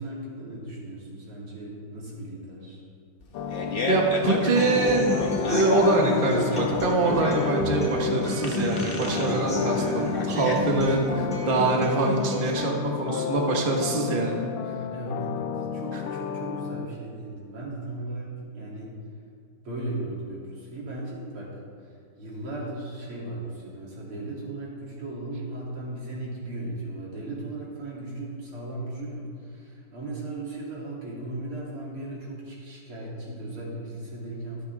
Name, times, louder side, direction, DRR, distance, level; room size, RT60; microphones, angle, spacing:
voice 1, 0.0-2.8 14.2-14.4 14.6-18.9 19.6-21.5 21.8-34.7, right 2 dB, 75° right, -5 dB, 3.8 m, -37 dB
Fart, 3.2-11.2, left 1 dB, 35° left, 0.9 m, -31 dB
sound 1, 3.3-16.9, left 8 dB, 75° left, 1.3 m, -32 dB
voice 2, 3.9-14.4 15.9-16.0, right 2 dB, 30° right, 0 dB, 1.3 m, -24 dB
Human voice / Acoustic guitar, 4.5-12.5, left 1 dB, 5° left, 2.9 m, -31 dB
23.0 x 8.4 x 3.5 m, 2.3 s
omnidirectional pair, 2.4 m